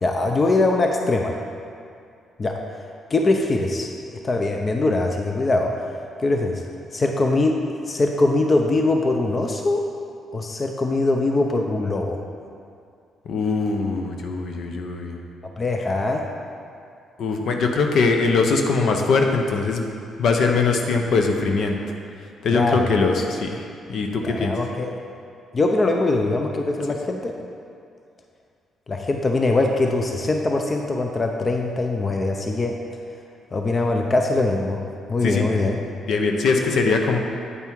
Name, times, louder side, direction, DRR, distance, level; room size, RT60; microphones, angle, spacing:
voice 1, 0.0-1.4 2.4-2.5 3.1-3.9 4.2-5.7 6.2-6.6 6.9-7.6 7.9-9.8 10.3-12.2 15.6-16.2 22.5-22.9 24.2-24.9 25.5-27.3 28.9-32.7 33.5-34.8 35.1-35.8, left 2 dB, 35° left, 3 dB, 0.6 m, -22 dB
voice 2, 13.3-15.2 17.2-19.8 20.2-21.8 22.4-23.6 23.9-24.6 35.2-35.6 36.1-37.2, left 4 dB, 65° left, 3 dB, 0.8 m, -21 dB
8.4 x 5.5 x 4.6 m, 2.3 s
cardioid pair, 90°, 0 cm